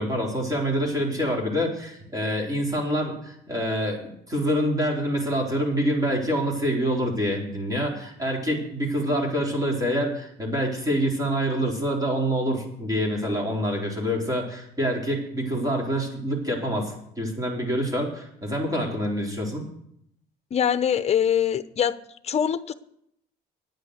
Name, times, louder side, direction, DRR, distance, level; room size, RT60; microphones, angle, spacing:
voice 1, 0.0-19.6, equal, 20° right, 0 dB, 4.1 m, -26 dB
voice 2, 20.5-22.0 22.2-22.7, left 9 dB, 40° left, 13 dB, 0.8 m, -23 dB
10.0 x 9.2 x 8.1 m, 0.73 s
cardioid pair, 110°, 17 cm